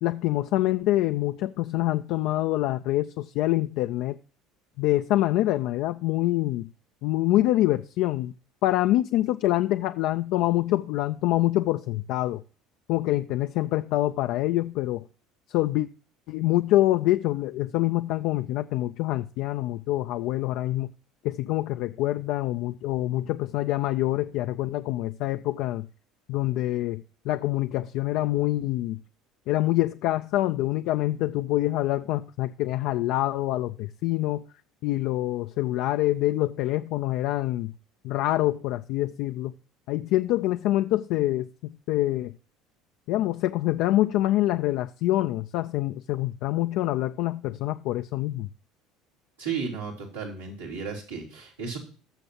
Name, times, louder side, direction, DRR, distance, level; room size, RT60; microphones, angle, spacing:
voice 1, 0.0-4.2 4.8-6.7 7.0-8.3 8.6-12.4 12.9-15.0 15.5-15.9 16.3-20.9 21.2-25.9 26.3-29.0 29.5-34.4 34.8-37.7 38.0-39.5 39.9-42.3 43.1-48.5, left 15 dB, 60° left, 0.4 m, -25 dB
voice 2, 49.4-51.8, right 5 dB, 90° right, 3.6 m, -34 dB
19.5 x 6.8 x 2.8 m
hypercardioid pair, 65°, 0 cm